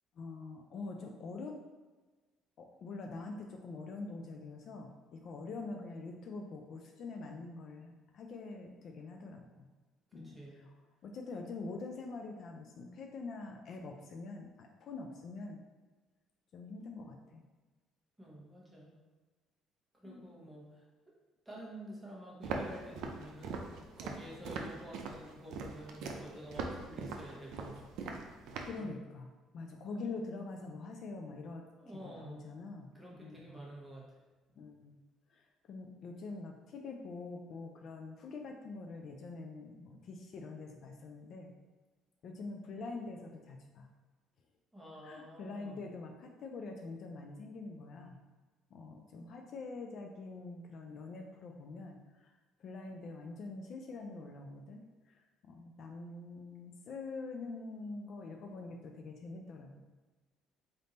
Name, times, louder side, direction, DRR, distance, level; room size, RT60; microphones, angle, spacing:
voice 1, 0.2-1.6 2.6-9.7 10.1-10.7 11.0-15.6 16.5-17.4 20.0-20.2 28.6-29.3 29.5-31.7 32.0-33.6 34.6-35.0 35.3-41.5 42.2-43.9 45.0-48.2 48.7-52.3 52.6-59.8, left 3 dB, 55° left, 3 dB, 0.4 m, -45 dB
voice 2, 10.1-10.7 18.2-18.9 19.9-21.1 21.4-28.4 28.7-28.9 31.8-32.5 32.9-34.2 44.7-45.8, right 1 dB, 5° right, -5 dB, 1.1 m, -50 dB
Walk footsteps, 22.4-28.8, right 4 dB, 75° right, 0.5 m, -41 dB
3.5 x 2.6 x 3.9 m, 1.3 s
cardioid pair, 110°, 0 cm